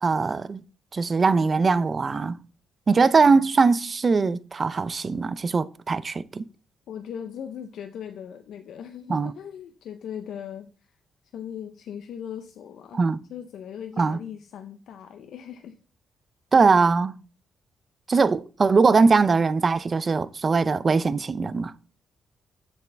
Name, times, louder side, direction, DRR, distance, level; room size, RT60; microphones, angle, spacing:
voice 1, 0.0-0.6 0.9-2.4 2.9-6.4 9.1-9.3 12.9-13.2 14.0-14.2 16.5-17.2 18.1-21.7, right 4 dB, 35° right, 0.4 m, -21 dB
voice 2, 6.9-11.0 11.3-15.8, left 8 dB, 80° left, 0.6 m, -39 dB
7.2 x 6.1 x 3.3 m
cardioid pair, 95°, 0 cm